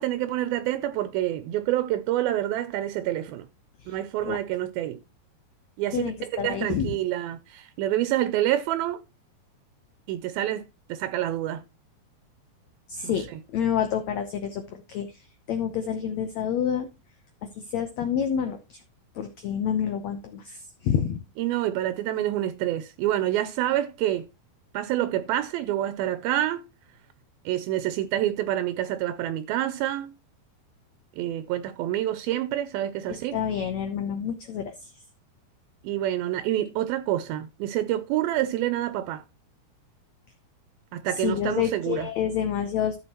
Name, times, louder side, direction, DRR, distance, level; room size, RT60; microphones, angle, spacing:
voice 1, 0.0-3.5 3.9-5.0 5.8-9.0 10.1-11.6 13.0-13.4 21.4-24.3 24.7-26.6 27.5-30.1 31.2-33.4 35.8-39.2 40.9-42.1, right 13 dB, 80° right, 2.4 m, -27 dB
voice 2, 5.9-6.9 12.9-15.1 15.5-16.9 17.6-18.8 19.2-21.2 33.1-34.9 41.2-43.0, left 8 dB, 85° left, 1.5 m, -28 dB
13.0 x 6.7 x 3.0 m
omnidirectional pair, 4.3 m